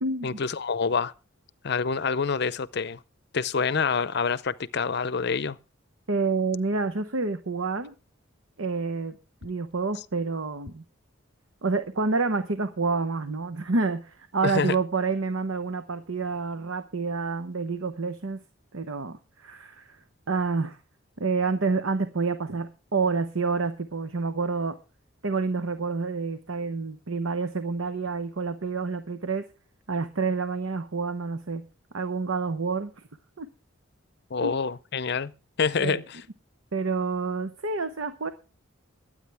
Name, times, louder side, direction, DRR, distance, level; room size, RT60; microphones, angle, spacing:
voice 1, 0.2-1.1 1.6-3.0 3.3-5.6 14.4-14.7 34.3-35.3 35.6-36.2, left 5 dB, 55° left, 0.6 m, -27 dB
voice 2, 6.1-7.9 8.6-10.8 11.6-18.4 18.7-20.0 20.3-20.8 21.2-24.8 25.2-29.4 29.9-31.6 31.9-32.9 33.4-33.5 34.4-34.5 35.8-36.0 36.7-38.3, right 4 dB, 80° right, 1.0 m, -28 dB
22.5 x 9.0 x 3.4 m
head